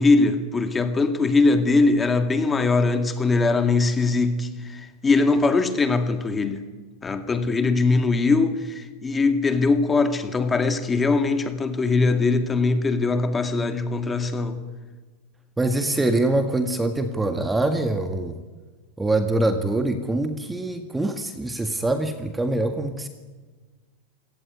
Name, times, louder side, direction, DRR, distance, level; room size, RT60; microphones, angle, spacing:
voice 1, 0.0-6.6 7.0-14.6, left 3 dB, 15° left, 2.3 m, -21 dB
voice 2, 15.6-18.4 19.0-23.1, right 2 dB, 10° right, 1.8 m, -24 dB
27.0 x 17.5 x 9.5 m
supercardioid pair, 130°, 0 cm